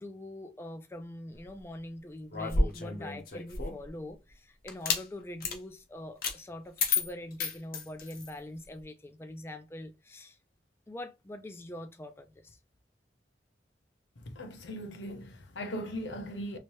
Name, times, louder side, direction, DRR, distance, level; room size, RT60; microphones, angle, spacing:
voice 1, 0.0-10.4 10.9-12.6, left 1 dB, 15° left, 0.3 m, -43 dB
sound 1, 2.3-3.9 4.7-5.0 5.4-5.6 6.2-6.4 6.8-8.3, left 4 dB, 55° left, 0.8 m, -31 dB
voice 2, 14.3-16.6, equal, 90° left, 0.8 m, -39 dB
3.1 x 2.7 x 2.9 m
head